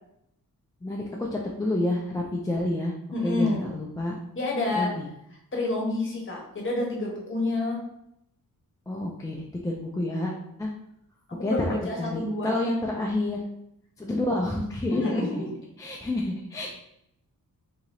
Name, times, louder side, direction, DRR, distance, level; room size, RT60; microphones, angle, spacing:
voice 1, 1.3-2.9 3.2-4.2 4.7-5.1 8.9-10.3 10.6-10.7 11.4-13.4 14.0-15.4 15.8-16.7, left 1 dB, 10° left, -2 dB, 0.4 m, -29 dB
voice 2, 3.1-3.7 4.3-4.9 5.5-7.8 11.4-12.6 14.9-15.5, left 2 dB, 35° left, -2 dB, 1.1 m, -28 dB
3.9 x 2.8 x 3.0 m, 0.79 s
wide cardioid pair, 130°, 36 cm